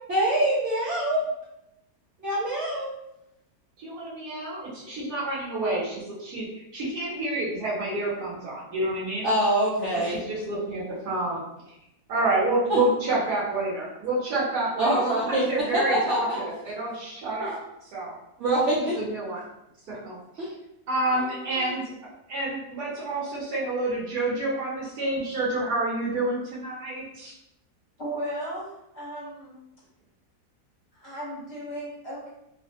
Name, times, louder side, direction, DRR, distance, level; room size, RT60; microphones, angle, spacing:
voice 1, 0.1-1.2 2.2-2.9 9.2-10.2 12.7-12.8 14.8-15.4 15.7-16.4 17.4-17.5 18.4-19.0 20.4-20.5 21.5-21.7, right 1 dB, 60° right, -7 dB, 0.9 m, -24 dB
voice 2, 3.8-9.3 10.0-11.4 12.1-18.1 18.7-19.4 19.9-20.5 20.9-21.8 22.3-27.3, right 2 dB, 90° right, -7 dB, 1.3 m, -29 dB
voice 3, 28.0-29.6 30.9-32.3, right 1 dB, 45° left, -8 dB, 1.2 m, -35 dB
3.0 x 2.1 x 2.7 m, 0.85 s
omnidirectional pair, 1.6 m